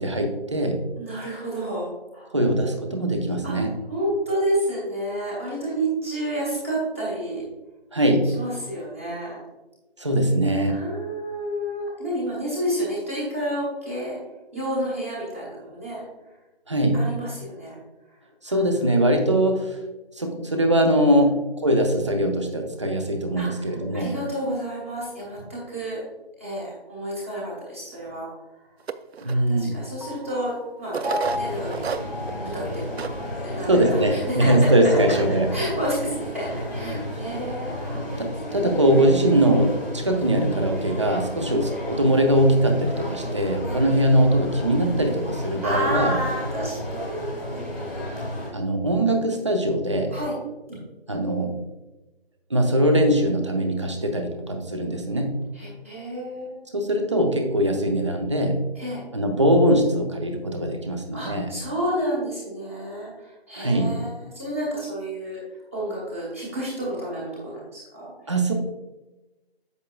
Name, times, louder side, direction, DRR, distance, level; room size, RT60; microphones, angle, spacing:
voice 1, 0.0-0.8 2.3-3.7 7.9-8.3 10.0-10.8 16.7-17.0 18.4-19.8 20.2-21.4 21.6-24.2 29.2-29.8 33.7-35.5 36.8-37.0 38.2-46.2 48.5-50.1 51.1-51.5 52.5-55.4 56.7-58.6 59.1-61.5 63.5-64.0 68.3-68.5, right 1 dB, 30° right, 4 dB, 0.7 m, -21 dB
voice 2, 1.0-2.3 3.4-7.4 8.3-9.4 10.7-14.2 14.5-16.0 16.9-17.8 18.4-19.1 21.1-21.3 23.4-26.0 26.4-28.3 28.5-28.6 29.2-32.0 32.5-34.5 34.8-35.2 35.5-38.2 38.4-38.8 39.3-39.4 41.4-41.6 43.6-43.8 45.3-48.0 50.1-50.4 50.7-50.8 55.5-56.6 58.7-59.0 61.1-65.4 65.7-68.1, right 1 dB, 15° right, -7 dB, 1.1 m, -30 dB
sound 1, 28.9-29.3 30.1-30.2 30.9-32.4 32.7-32.8 33.0-33.2 33.7-33.8 34.4-34.8, right 7 dB, 80° right, 0.5 m, -29 dB
Piano, 30.0-36.7, left 2 dB, 35° left, 0.6 m, -38 dB
sound 2, 31.2-48.5, left 1 dB, 5° left, 1.1 m, -33 dB
8.2 x 6.2 x 2.3 m, 1.1 s
figure-of-eight pair, 165°, 31 cm